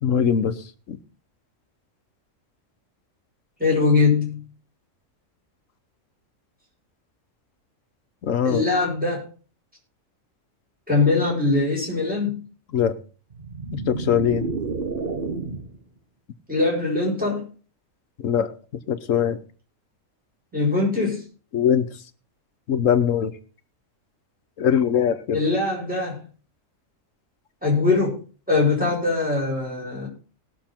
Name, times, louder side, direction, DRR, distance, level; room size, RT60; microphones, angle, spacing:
voice 1, 0.0-0.6 0.9-1.0 8.2-8.7 12.7-13.0 13.7-14.4 18.2-18.5 18.9-19.4 21.5-21.9 22.7-23.3 24.6-25.4, left 8 dB, 75° left, 1.3 m, -21 dB
voice 2, 3.6-4.5 8.4-9.2 10.9-12.4 16.5-17.4 20.5-21.2 25.3-26.2 27.6-28.2 28.5-30.1, left 3 dB, 5° right, 5.9 m, -22 dB
sound 1, 13.3-15.8, right 4 dB, 45° right, 1.2 m, -30 dB
19.0 x 6.8 x 4.4 m
omnidirectional pair, 1.4 m